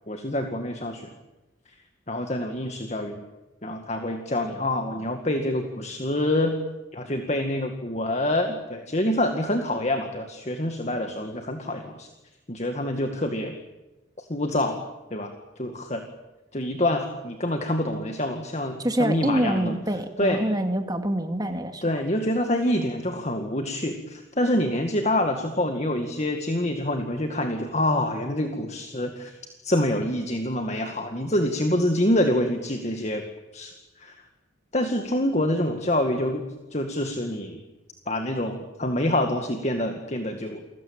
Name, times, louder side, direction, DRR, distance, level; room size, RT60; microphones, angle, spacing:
voice 1, 0.1-1.1 2.1-3.2 3.6-6.6 6.9-12.1 12.5-13.5 14.2-14.8 15.1-16.0 16.5-19.8 20.2-20.4 21.8-29.4 29.6-33.3 33.5-34.2 34.7-36.4 36.7-37.6 38.1-40.6, left 1 dB, 35° left, 5 dB, 2.1 m, -26 dB
voice 2, 18.8-21.8, right 1 dB, 20° right, 6 dB, 2.3 m, -26 dB
29.5 x 21.5 x 9.0 m, 1.1 s
head